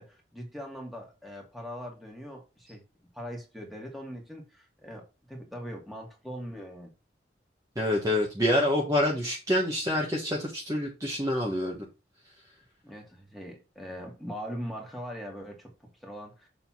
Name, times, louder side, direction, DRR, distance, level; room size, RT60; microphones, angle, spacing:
voice 1, 0.0-2.8 3.1-6.9 12.8-16.5, equal, ahead, 2.3 m, -41 dB
voice 2, 7.7-11.8, left 1 dB, 20° right, 1.3 m, -27 dB
7.0 x 3.9 x 5.9 m
head